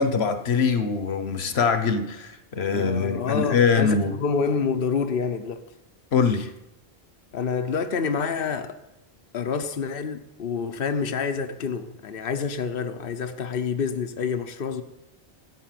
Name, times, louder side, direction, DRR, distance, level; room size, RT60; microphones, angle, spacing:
voice 1, 0.0-4.2 6.1-6.5, left 5 dB, 85° left, 1.3 m, -23 dB
voice 2, 2.7-5.6 7.3-8.8 9.3-14.8, left 5 dB, 65° left, 1.1 m, -27 dB
15.0 x 8.2 x 7.7 m
omnidirectional pair, 1.0 m